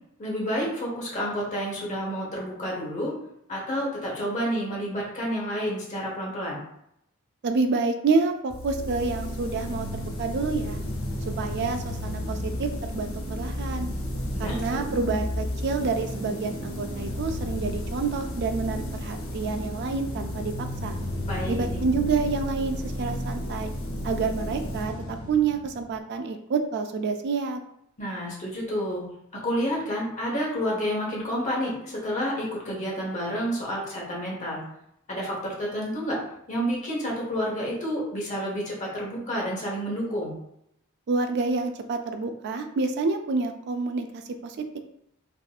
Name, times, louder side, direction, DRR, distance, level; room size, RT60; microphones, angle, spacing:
voice 1, 0.2-3.2 3.5-6.6 14.3-14.9 21.3-21.6 28.0-34.6 35.1-36.2 36.5-40.3, equal, 35° left, -4 dB, 1.0 m, -29 dB
voice 2, 7.4-10.8 11.4-13.9 14.4-21.0 21.5-23.7 24.0-27.6 41.1-44.8, right 4 dB, 50° right, 6 dB, 0.3 m, -28 dB
sound 1, 8.5-26.0, left 1 dB, 65° left, 0.7 m, -32 dB
3.5 x 2.6 x 2.3 m, 0.76 s
head